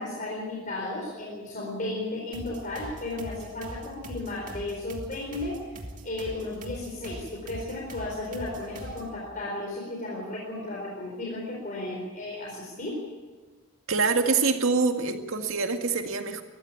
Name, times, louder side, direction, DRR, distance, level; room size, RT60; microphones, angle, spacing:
voice 1, 0.0-5.6 6.0-13.1, left 2 dB, 40° left, -3 dB, 4.3 m, -34 dB
sound 1, 2.3-9.2, right 1 dB, 40° right, 2.4 m, -42 dB
voice 2, 13.9-16.4, right 4 dB, 80° right, 5 dB, 2.0 m, -25 dB
22.0 x 14.5 x 8.6 m, 1.4 s
head